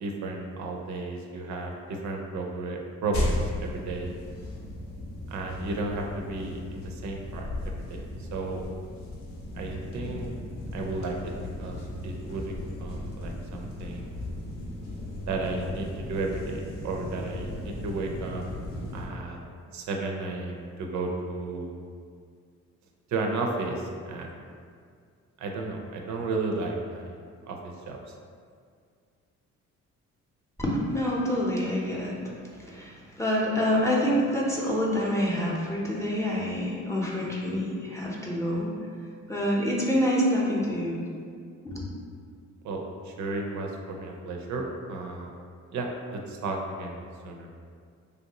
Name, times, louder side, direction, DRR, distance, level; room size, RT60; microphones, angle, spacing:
voice 1, 0.0-4.1 5.3-8.6 9.6-10.3 10.7-11.3 11.6-14.1 15.3-18.4 18.9-19.4 19.7-21.7 23.1-24.3 25.4-27.2 27.5-28.1 42.6-45.3 45.7-47.5, right 3 dB, 70° right, 1 dB, 0.5 m, -33 dB
sound 1, 3.1-19.1, left 1 dB, 65° left, 0.7 m, -36 dB
voice 2, 30.6-32.3 32.6-38.7 39.3-41.0 41.6-41.9, equal, 10° left, -4 dB, 0.6 m, -27 dB
3.1 x 2.6 x 2.8 m, 2.2 s
cardioid pair, 90°, 30 cm